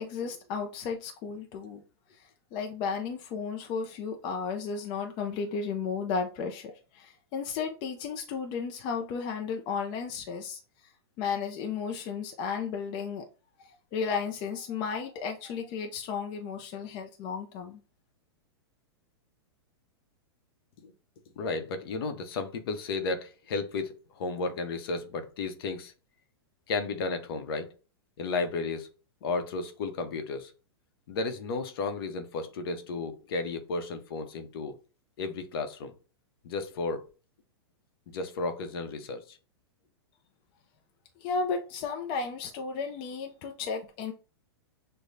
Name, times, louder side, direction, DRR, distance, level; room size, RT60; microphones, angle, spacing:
voice 1, 0.0-1.8 2.5-10.6 11.2-13.2 13.7-17.8 41.2-44.1, left 5 dB, 40° left, 0.6 m, -34 dB
voice 2, 21.4-25.9 26.7-27.7 28.2-28.9 29.2-30.5 31.1-34.7 35.2-35.9 36.4-37.1 38.1-39.4, left 3 dB, 60° left, 0.9 m, -33 dB
6.5 x 2.3 x 2.6 m
hypercardioid pair, 125°, 14 cm